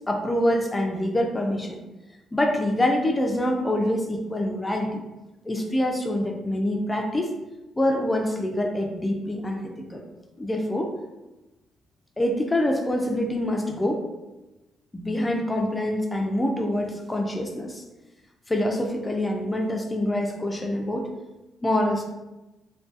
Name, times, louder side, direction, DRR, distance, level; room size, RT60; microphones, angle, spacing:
voice 1, 0.0-1.8 2.3-5.0 5.5-7.3 7.8-10.0 10.4-10.9 12.2-14.0 14.9-17.8 18.5-21.1 21.6-22.0, left 1 dB, 15° left, 2 dB, 0.3 m, -25 dB
2.5 x 2.2 x 2.4 m, 1.1 s
cardioid pair, 90°, 0 cm